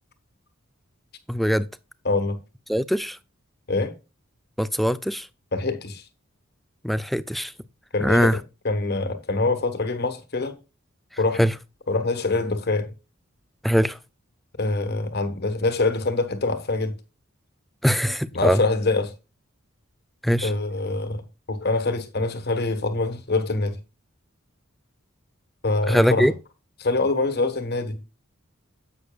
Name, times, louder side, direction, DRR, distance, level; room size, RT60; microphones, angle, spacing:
voice 1, 1.3-1.7 2.7-3.2 4.6-5.3 6.8-7.5 8.0-8.4 11.1-11.5 13.6-14.0 17.8-18.6 20.2-20.5 25.9-26.3, equal, ahead, 0.3 m, -22 dB
voice 2, 2.0-2.4 3.7-4.0 5.5-6.0 7.9-8.4 8.6-10.6 11.2-11.4 11.9-12.9 14.6-16.9 18.3-19.1 20.4-23.8 25.6-26.3 26.8-28.0, left 3 dB, 50° left, 1.4 m, -24 dB
10.5 x 8.2 x 2.4 m
head